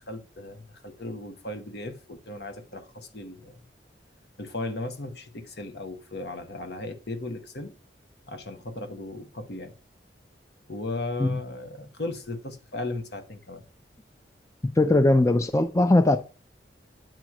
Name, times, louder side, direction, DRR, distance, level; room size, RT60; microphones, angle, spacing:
voice 1, 0.0-3.6 4.4-7.7 8.3-9.7 10.7-13.6, left 2 dB, 65° left, 1.0 m, -36 dB
voice 2, 14.6-16.2, left 2 dB, 15° left, 0.4 m, -20 dB
9.1 x 3.0 x 5.9 m
head